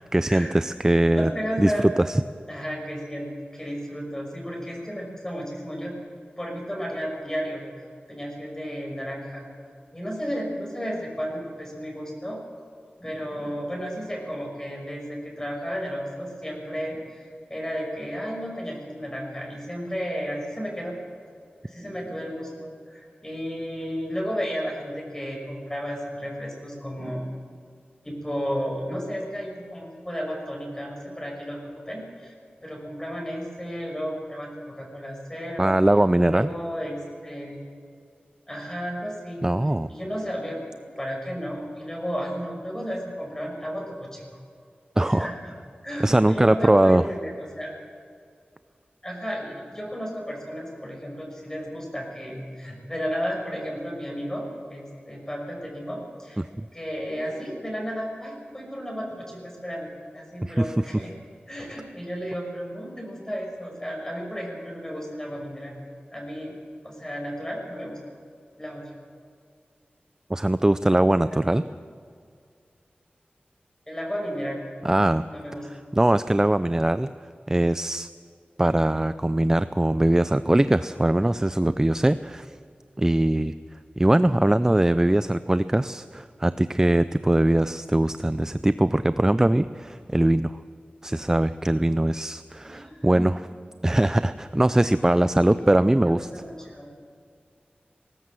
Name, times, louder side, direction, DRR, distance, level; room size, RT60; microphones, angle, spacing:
voice 1, 0.1-1.3 1.6-2.2 35.6-36.5 39.4-39.9 45.0-45.3 46.0-47.0 56.4-56.6 60.4-60.7 70.3-71.6 74.8-75.2 75.7-77.1 77.5-78.1 78.6-82.5 83.0-83.5 84.0-90.6 91.0-93.5 93.8-96.3, right 1 dB, 15° right, 13 dB, 0.5 m, -21 dB
voice 2, 1.1-1.9 2.5-5.9 6.4-7.6 8.1-9.4 9.9-12.4 13.0-17.2 17.5-21.0 21.6-27.3 28.0-31.6 31.9-32.3 32.6-35.8 36.3-37.6 38.5-39.4 39.9-44.2 45.1-45.3 45.8-47.7 49.0-54.4 54.7-56.4 56.7-61.1 61.5-65.7 66.1-66.5 66.8-68.0 68.6-68.8 71.5-71.6 73.9-74.6 75.3-75.7 92.6-93.2 95.4-95.7 96.0-96.9, equal, 15° left, 0 dB, 6.0 m, -33 dB
19.5 x 17.5 x 7.7 m, 2.2 s
wide cardioid pair, 75°, 4 cm